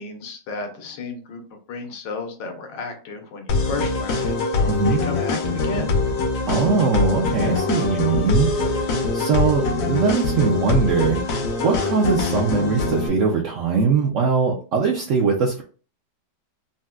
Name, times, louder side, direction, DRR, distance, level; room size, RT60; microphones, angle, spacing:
voice 1, 0.0-1.4 1.7-4.4 4.9-5.9, left 3 dB, 85° left, 4 dB, 1.5 m, -33 dB
sound 1, 3.5-13.1, left 3 dB, 65° left, 1.1 m, -23 dB
voice 2, 4.7-5.0 6.5-8.7 9.1-11.3 11.6-15.6, right 5 dB, 70° right, -2 dB, 0.7 m, -21 dB
4.0 x 2.1 x 2.3 m, 0.38 s
omnidirectional pair, 2.0 m